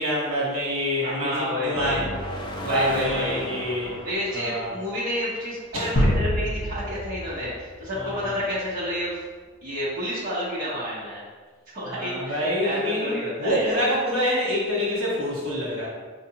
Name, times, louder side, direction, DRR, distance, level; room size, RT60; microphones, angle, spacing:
voice 1, 0.0-2.1 2.6-3.9 4.3-4.7 5.7-5.9 8.0-8.1 11.9-15.9, equal, 85° right, -6 dB, 1.2 m, -26 dB
voice 2, 1.0-2.1 2.6-3.5 4.0-9.2 9.6-11.2 11.7-13.9, equal, 40° right, -8 dB, 1.1 m, -30 dB
sound 1, 1.7-5.8, left 1 dB, 25° left, 0.4 m, -36 dB
sound 2, 6.0-8.9, equal, 55° left, 1.2 m, -26 dB
4.6 x 2.5 x 2.9 m, 1.4 s
head